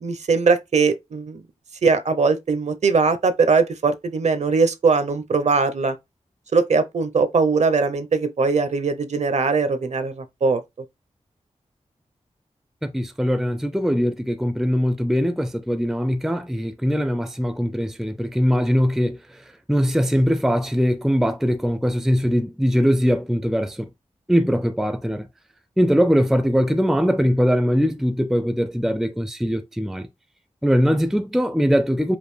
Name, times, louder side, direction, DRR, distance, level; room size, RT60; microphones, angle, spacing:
voice 1, 0.0-1.4 1.8-5.9 6.5-10.6, right 4 dB, 65° right, 0.6 m, -20 dB
voice 2, 12.8-19.2 19.7-23.9 24.3-25.3 25.8-30.1 30.6-32.2, equal, ahead, 0.3 m, -21 dB
5.1 x 2.5 x 3.1 m
wide cardioid pair, 100°, 12 cm